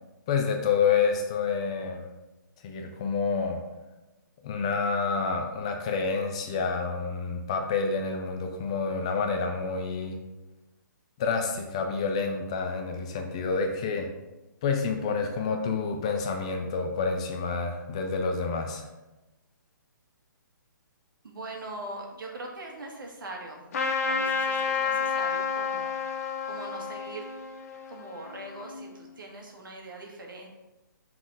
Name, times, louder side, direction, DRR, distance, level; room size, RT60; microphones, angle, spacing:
voice 1, 0.3-2.1 2.6-3.6 4.4-10.2 11.2-14.1 14.6-18.9, left 5 dB, 15° left, 3 dB, 0.4 m, -28 dB
voice 2, 21.2-23.7 24.0-25.9 26.4-27.3 27.9-30.5, right 2 dB, 80° right, 0 dB, 1.8 m, -41 dB
Trumpet, 23.7-28.8, left 5 dB, 45° left, 0.8 m, -30 dB
5.9 x 4.0 x 4.8 m, 1.0 s
hypercardioid pair, 170°, 11 cm